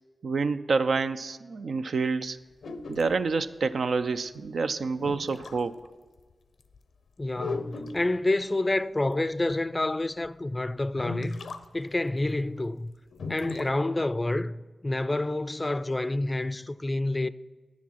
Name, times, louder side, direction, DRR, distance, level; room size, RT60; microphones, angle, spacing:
voice 1, 0.2-2.4 2.9-5.8, right 4 dB, 75° right, 0.4 m, -28 dB
sound 1, 2.6-3.2 4.4-4.5 5.0-5.6 6.2-6.3 6.6-6.8 7.4-8.2 9.5-9.6 10.2-10.3 11.0-11.6 11.9-12.0 12.3-12.4 13.1-13.7, left 3 dB, 85° left, 0.5 m, -37 dB
voice 2, 7.2-11.4 11.7-12.9 13.3-17.3, left 2 dB, 25° left, 0.3 m, -28 dB
9.5 x 7.3 x 5.6 m
cardioid pair, 55°, 0 cm